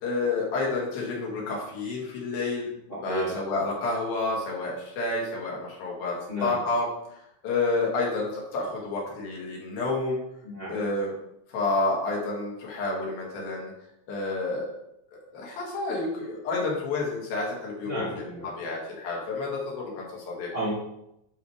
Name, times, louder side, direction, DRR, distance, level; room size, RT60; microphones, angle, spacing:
voice 1, 0.0-2.7 3.0-6.2 6.4-6.9 7.4-10.2 10.7-11.1 11.5-13.7 14.1-14.7 15.1-18.2 18.6-20.5, left 3 dB, 90° left, -3 dB, 3.8 m, -29 dB
voice 2, 2.9-3.3 6.3-6.6 10.4-10.8 17.8-18.5 20.5-20.7, right 1 dB, 20° left, -8 dB, 2.7 m, -32 dB
10.5 x 4.9 x 3.2 m, 0.80 s
omnidirectional pair, 4.1 m